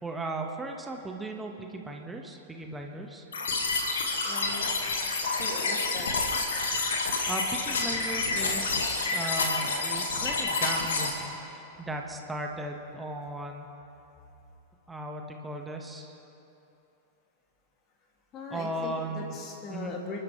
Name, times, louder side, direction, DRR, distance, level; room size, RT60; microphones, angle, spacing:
voice 1, 0.0-3.3 7.3-13.7 14.9-16.2 18.5-19.4 19.7-19.9, right 2 dB, 10° right, 2 dB, 1.5 m, -37 dB
sound 1, 3.3-11.1, left 3 dB, 65° left, 2.0 m, -28 dB
voice 2, 4.2-4.8 5.4-6.1 18.3-20.2, left 3 dB, 30° left, 0 dB, 2.5 m, -39 dB
29.5 x 12.0 x 3.3 m, 2.9 s
figure-of-eight pair, 90°, 0 cm